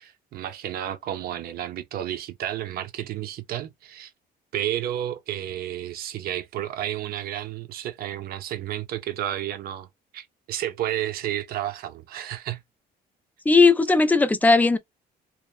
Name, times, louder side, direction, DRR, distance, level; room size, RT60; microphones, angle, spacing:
voice 1, 0.0-4.1 4.5-9.9 10.1-12.6, right 12 dB, 65° right, 0.5 m, -31 dB
voice 2, 13.5-14.8, left 3 dB, 10° left, 0.4 m, -17 dB
2.8 x 2.0 x 2.3 m
cardioid pair, 110°, 17 cm